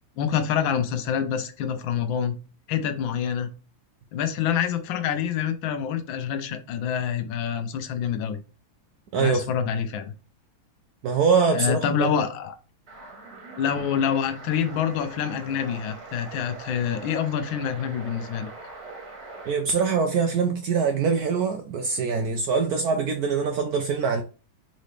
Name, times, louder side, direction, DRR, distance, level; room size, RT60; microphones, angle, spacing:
voice 1, 0.2-2.4 2.7-3.5 4.1-8.4 9.1-10.1 11.5-12.5 13.6-18.5, left 8 dB, 75° left, 1.4 m, -26 dB
voice 2, 9.1-9.4 11.0-12.1 19.5-24.2, right 5 dB, 80° right, 0.8 m, -23 dB
sound 1, 12.9-19.6, right 3 dB, 50° right, 1.6 m, -42 dB
4.1 x 4.0 x 3.2 m
omnidirectional pair, 2.2 m